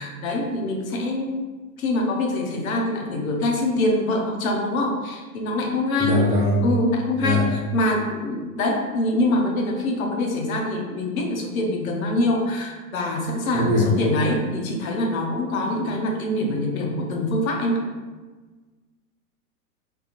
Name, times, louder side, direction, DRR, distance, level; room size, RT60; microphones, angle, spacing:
voice 1, 0.0-1.5 1.8-6.2 6.6-7.4 7.7-17.8, left 1 dB, 65° left, 1 dB, 0.9 m, -24 dB
voice 2, 6.0-6.6 7.2-7.4 13.5-13.9, left 2 dB, 30° right, -11 dB, 1.3 m, -21 dB
3.4 x 2.9 x 2.5 m, 1.3 s
hypercardioid pair, 115°, 44 cm